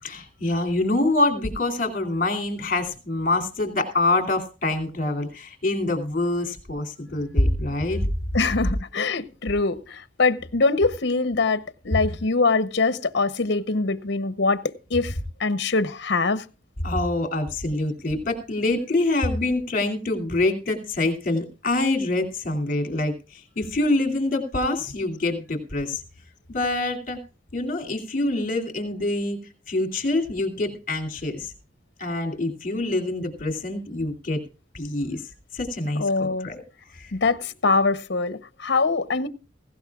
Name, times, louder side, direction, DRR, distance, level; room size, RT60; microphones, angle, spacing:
voice 1, 0.0-8.0 16.8-26.0 26.5-27.2 27.5-29.4 29.7-31.5 32.0-34.4 34.7-36.6 36.9-37.1, left 2 dB, 45° left, 2.7 m, -25 dB
voice 2, 8.3-16.4 36.0-36.5 37.1-39.3, left 3 dB, 65° left, 0.8 m, -23 dB
17.5 x 16.5 x 2.4 m
head